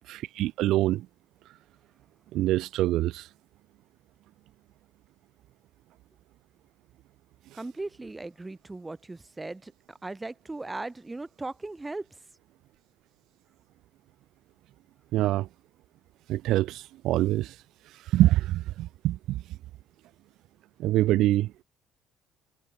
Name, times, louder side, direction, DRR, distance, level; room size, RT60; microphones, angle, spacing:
voice 1, 0.2-1.1 2.3-3.3 15.1-15.5 16.3-17.6 17.9-19.4 20.8-21.5, right 15 dB, 75° right, 0.4 m, -25 dB
voice 2, 7.5-12.1, right 2 dB, 20° right, 6.3 m, -38 dB
supercardioid pair, 70°, 0 cm